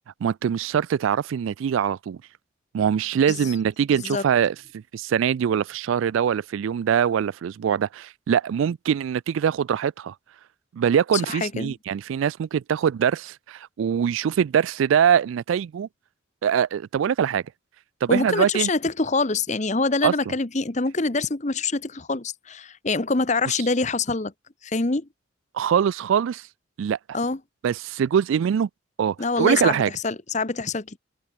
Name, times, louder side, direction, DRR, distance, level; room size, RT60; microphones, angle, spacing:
voice 1, 0.2-2.2 2.7-10.1 10.7-15.9 16.4-17.4 18.0-18.7 20.0-20.1 25.5-26.4 26.8-27.0 27.6-28.7 29.0-29.9, right 8 dB, 75° right, 0.3 m, -23 dB
voice 2, 11.3-11.7 18.1-24.3 24.6-25.1 27.1-27.4 29.2-29.8 30.0-31.0, left 3 dB, 35° left, 1.0 m, -25 dB
open air
head